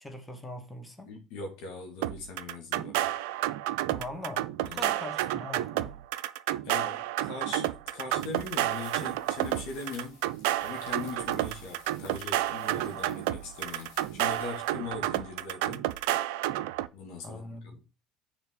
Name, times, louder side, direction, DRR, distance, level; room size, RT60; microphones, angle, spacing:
voice 1, 0.0-1.1 3.9-6.0 17.2-17.8, left 1 dB, 10° left, 2.1 m, -41 dB
voice 2, 1.0-3.1 4.6-4.9 6.6-10.2 10.6-15.9 16.9-17.8, left 4 dB, 70° left, 2.7 m, -40 dB
sound 1, 2.0-16.9, right 14 dB, 75° right, 0.5 m, -31 dB
sound 2, 8.1-15.2, left 2 dB, 85° left, 4.1 m, -55 dB
6.7 x 5.0 x 6.6 m
hypercardioid pair, 70°, 0 cm